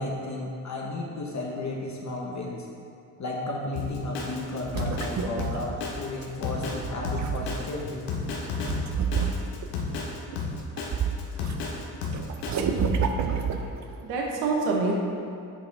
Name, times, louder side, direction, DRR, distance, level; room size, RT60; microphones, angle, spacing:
voice 1, 0.0-2.7 3.2-8.0, left 2 dB, 40° left, -2 dB, 1.1 m, -33 dB
Drum kit, 3.7-12.5, left 4 dB, 80° left, 1.2 m, -32 dB
sound 1, 4.4-6.2 6.7-7.8 8.7-9.8 10.3-11.5 11.8-13.9, right 6 dB, 45° right, 0.7 m, -29 dB
voice 2, 13.2-13.7 14.0-14.9, right 3 dB, 85° right, -1 dB, 1.1 m, -28 dB
8.7 x 5.0 x 3.4 m, 2.7 s
supercardioid pair, 65°, 42 cm